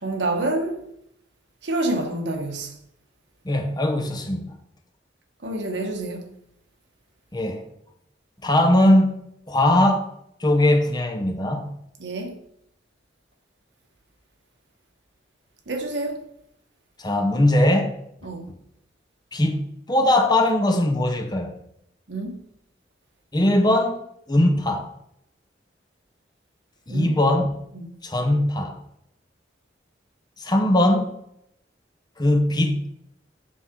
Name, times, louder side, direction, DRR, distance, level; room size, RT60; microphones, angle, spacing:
voice 1, 0.0-0.8 1.6-2.7 5.4-6.3 12.0-12.3 15.7-16.2 18.2-18.4 22.1-22.4 26.9-27.1, right 2 dB, 75° right, 1.2 m, -27 dB
voice 2, 3.4-4.5 7.3-7.6 8.4-9.2 9.5-10.1 10.4-11.7 17.0-18.0 19.3-21.5 23.3-24.0 24.3-24.9 26.9-27.5 28.0-28.8 30.4-31.1 32.2-32.9, left 1 dB, 25° left, 0.9 m, -20 dB
8.2 x 5.9 x 3.7 m
head